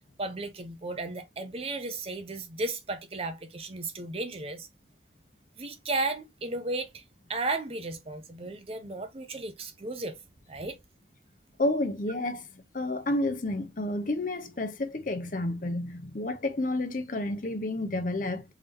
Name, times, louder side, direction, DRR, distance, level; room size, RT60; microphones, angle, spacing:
voice 1, 0.2-4.7 5.6-7.0 7.3-10.2 10.5-10.8, right 2 dB, 30° right, 0.5 m, -34 dB
voice 2, 11.6-18.4, left 1 dB, 45° left, 0.7 m, -30 dB
3.5 x 2.8 x 3.4 m
head